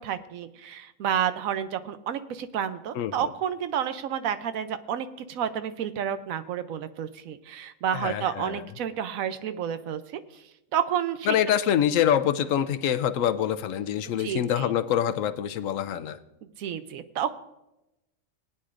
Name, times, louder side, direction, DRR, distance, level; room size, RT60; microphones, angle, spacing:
voice 1, 0.0-10.4 10.7-11.4 14.0-14.7 16.6-17.3, right 9 dB, 85° right, 11 dB, 1.1 m, -30 dB
voice 2, 3.0-3.3 7.9-8.6 11.3-16.2, left 10 dB, 75° left, 11 dB, 1.0 m, -25 dB
19.5 x 9.5 x 2.5 m, 0.93 s
omnidirectional pair, 1.4 m